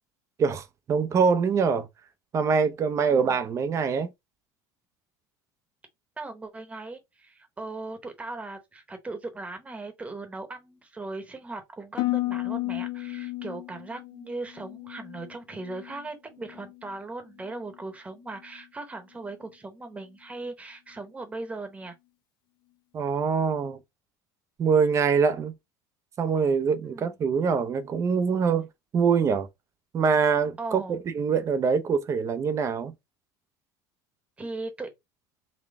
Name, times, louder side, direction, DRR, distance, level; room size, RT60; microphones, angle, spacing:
voice 1, 0.4-1.9 2.3-4.1 22.9-23.8 24.6-25.5 26.2-28.7 28.9-29.5 29.9-32.9, right 5 dB, 35° right, 0.6 m, -24 dB
voice 2, 3.1-3.4 6.2-21.9 26.8-27.2 30.6-31.0 34.4-34.9, right 3 dB, 15° right, 1.0 m, -38 dB
Harp, 12.0-16.1 16.4-16.9 17.4-17.8, left 19 dB, 55° left, 0.4 m, -33 dB
4.0 x 2.2 x 3.5 m
supercardioid pair, 115°, 9 cm